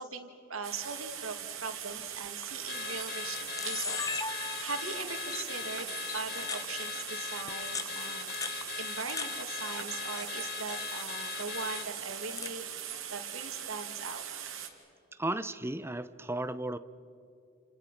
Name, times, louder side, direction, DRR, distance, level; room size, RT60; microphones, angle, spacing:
voice 1, 0.0-4.0 4.3-14.2, right 4 dB, 85° right, 5 dB, 2.6 m, -41 dB
sound 1, 0.6-14.7, right 9 dB, 70° right, 2.9 m, -41 dB
Camera, 2.2-2.4 3.1-3.2 3.3-4.9 5.3-5.4 6.1-6.7 7.5-9.3 9.6-10.3 10.6-10.9 11.7-12.6, left 4 dB, 15° left, 0.9 m, -39 dB
Car / Alarm, 2.7-11.9, left 12 dB, 50° left, 0.5 m, -40 dB
voice 2, 15.2-16.8, right 1 dB, 10° right, 13 dB, 0.7 m, -34 dB
30.0 x 29.0 x 5.9 m, 2.7 s
head